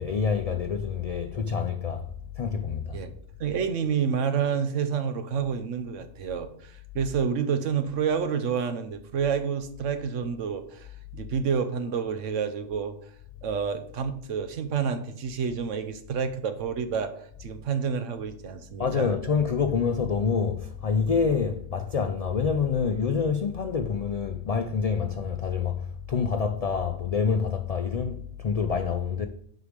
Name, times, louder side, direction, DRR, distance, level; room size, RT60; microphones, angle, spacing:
voice 1, 0.0-2.0 2.4-3.0 18.8-29.3, left 6 dB, 55° left, 0.4 m, -27 dB
voice 2, 3.4-10.9 11.1-12.9 13.4-19.2, right 6 dB, 85° right, 1.2 m, -29 dB
8.2 x 4.9 x 5.1 m
omnidirectional pair, 1.2 m